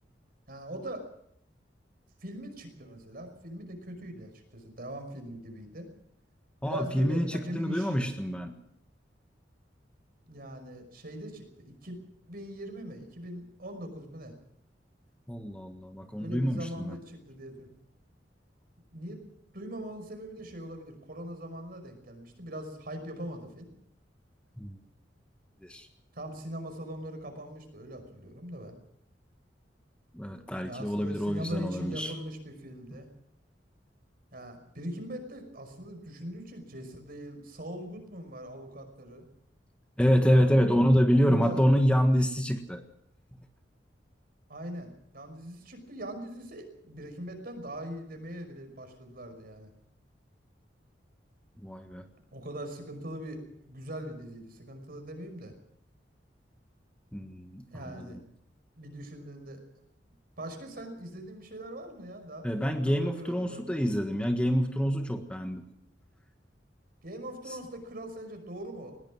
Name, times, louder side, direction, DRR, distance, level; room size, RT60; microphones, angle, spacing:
voice 1, 0.5-1.0 2.2-5.9 6.6-8.0 10.3-12.0 12.3-14.3 16.2-17.7 18.9-19.2 19.5-23.7 26.1-28.8 30.6-33.1 34.3-39.2 40.2-40.5 41.1-41.6 44.5-49.7 52.3-55.5 57.7-58.2 58.7-59.6 60.4-63.9 67.0-68.9, right 1 dB, 55° right, 7 dB, 5.6 m, -41 dB
voice 2, 6.6-8.5 15.3-17.0 24.6-24.8 25.6-25.9 30.1-32.1 40.0-42.8 51.6-52.0 57.1-58.2 62.4-65.7, equal, 5° left, 5 dB, 1.6 m, -26 dB
20.5 x 20.0 x 6.4 m, 0.71 s
head